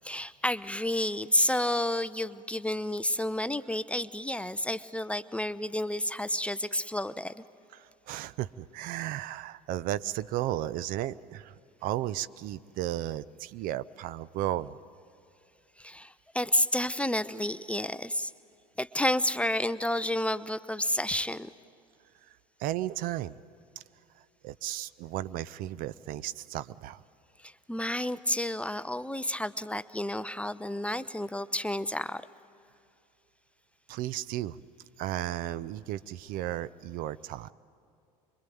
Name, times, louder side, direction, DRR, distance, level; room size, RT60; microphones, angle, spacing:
voice 1, 0.0-7.4 15.8-18.3 18.8-21.5 27.4-32.2, left 1 dB, 5° left, 15 dB, 0.5 m, -30 dB
voice 2, 7.7-11.5 11.8-14.8 22.6-23.4 24.4-27.0 33.9-34.6 35.0-37.5, right 13 dB, 45° right, 17 dB, 0.6 m, -34 dB
25.0 x 23.0 x 9.2 m, 2.5 s
figure-of-eight pair, 70°, 20 cm